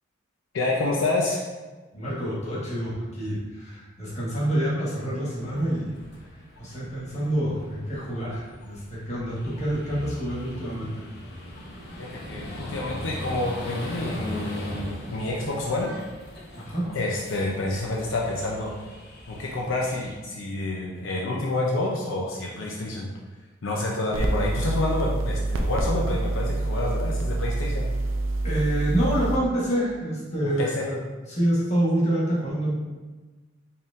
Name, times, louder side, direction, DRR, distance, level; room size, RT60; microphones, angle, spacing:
voice 1, 0.5-1.4 12.0-15.9 16.9-18.7 19.3-23.1 23.6-27.9 30.4-30.9, left 2 dB, 80° left, -2 dB, 0.5 m, -28 dB
voice 2, 1.9-5.9 6.6-11.0 16.5-16.9 28.4-31.0 31.3-32.8, right 1 dB, 35° left, -7 dB, 1.3 m, -27 dB
sound 1, 5.4-20.2, left 1 dB, 55° left, 0.8 m, -40 dB
sound 2, 24.1-29.4, right 2 dB, 90° right, 0.4 m, -26 dB
4.4 x 3.6 x 2.5 m, 1.3 s
head